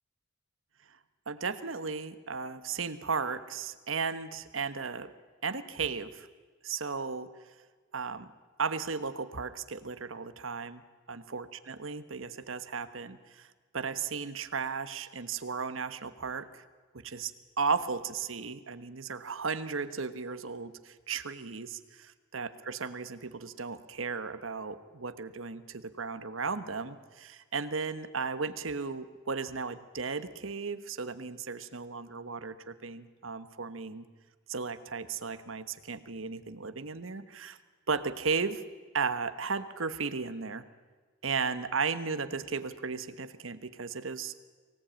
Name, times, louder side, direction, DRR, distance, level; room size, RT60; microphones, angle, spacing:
voice 1, 1.3-5.1 5.4-6.3 6.6-7.3 7.9-8.3 8.6-10.8 11.1-13.5 13.7-16.6 16.9-17.3 17.6-34.1 34.5-37.6 37.9-38.6 38.9-40.6 41.2-44.3, right 5 dB, 75° right, 12 dB, 1.2 m, -35 dB
24.0 x 17.5 x 8.9 m, 1.4 s
head